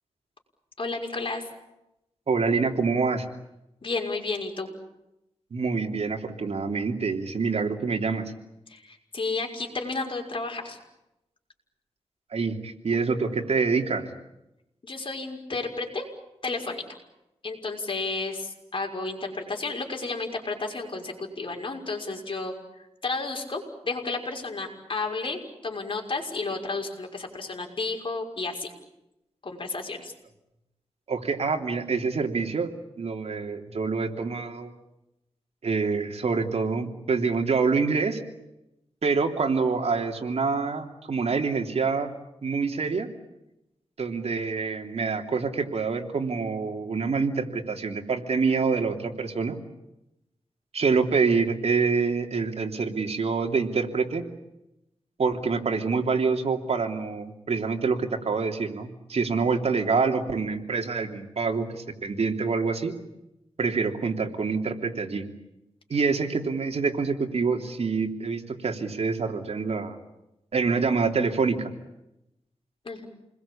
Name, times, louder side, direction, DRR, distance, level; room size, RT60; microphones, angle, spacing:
voice 1, 0.8-1.4 3.8-4.7 8.7-10.8 14.8-16.1 16.4-16.8 17.4-22.5 23.0-28.7 29.4-30.1 72.8-73.1, left 3 dB, 50° left, 2 dB, 6.0 m, -32 dB
voice 2, 2.3-3.2 5.5-8.3 12.3-14.1 31.1-32.7 33.0-34.7 35.6-38.2 39.0-42.1 42.4-43.1 44.0-49.6 50.7-54.2 55.2-62.9 63.6-65.3 65.9-70.0 70.5-71.7, right 4 dB, 70° right, 4 dB, 3.2 m, -26 dB
28.5 x 21.5 x 8.7 m, 0.89 s
wide cardioid pair, 85°, 11 cm